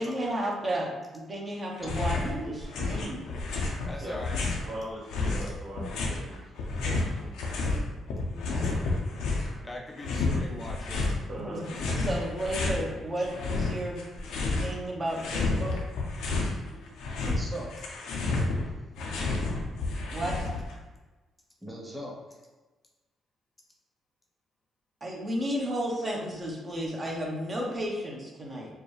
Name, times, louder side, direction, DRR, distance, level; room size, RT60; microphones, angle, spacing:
voice 1, 0.0-2.2 2.8-3.3 8.3-8.8 11.4-11.8 12.1-14.0 14.6-15.7 20.1-20.3 25.0-28.7, equal, 30° right, -2 dB, 1.0 m, -33 dB
sound 1, 1.8-2.3 2.6-4.7 5.1-7.8 8.1-9.6 10.0-11.2 11.6-12.8 13.2-14.8 15.0-16.5 16.9-20.7, left 3 dB, 85° left, 0.7 m, -30 dB
voice 2, 1.8-2.6 6.1-6.2 8.1-8.3 9.1-9.3 16.5-16.6 17.2-18.0 21.6-22.4, right 1 dB, ahead, -3 dB, 1.0 m, -40 dB
voice 3, 3.9-4.4 9.6-11.0, left 1 dB, 20° left, 0 dB, 0.5 m, -40 dB
voice 4, 4.7-5.8 6.1-6.3 6.6-7.3 11.3-11.6, right 1 dB, 50° right, -4 dB, 1.3 m, -40 dB
4.7 x 2.3 x 3.2 m, 1.2 s
cardioid pair, 90°, 0 cm